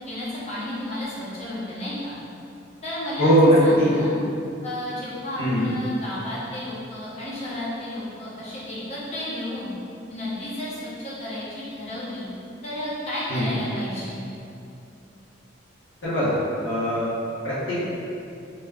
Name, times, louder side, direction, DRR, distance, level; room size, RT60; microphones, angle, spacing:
voice 1, 0.1-2.1 2.8-3.3 3.6-4.1 4.6-9.7 10.1-12.2 12.6-14.2, left 1 dB, 35° left, -8 dB, 0.8 m, -32 dB
voice 2, 3.2-3.9 5.4-5.7 13.3-13.5 16.0-16.3 16.6-17.1 17.4-17.8, equal, 85° left, -12 dB, 1.0 m, -20 dB
2.9 x 2.3 x 3.4 m, 2.7 s
head